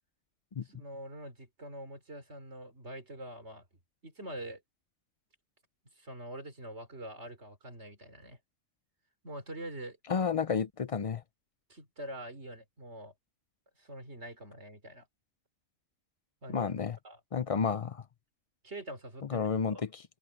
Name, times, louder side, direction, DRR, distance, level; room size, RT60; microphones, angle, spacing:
voice 1, 0.6-3.7 4.0-4.6 5.8-8.4 9.2-10.0 11.7-13.1 13.8-15.1 16.4-16.7 17.0-17.2 18.6-19.4 19.7-19.8, right 1 dB, 55° right, 4.2 m, -44 dB
voice 2, 10.1-11.2 16.5-17.0 17.3-18.0 19.3-20.0, left 6 dB, 65° left, 0.3 m, -31 dB
open air
omnidirectional pair, 1.4 m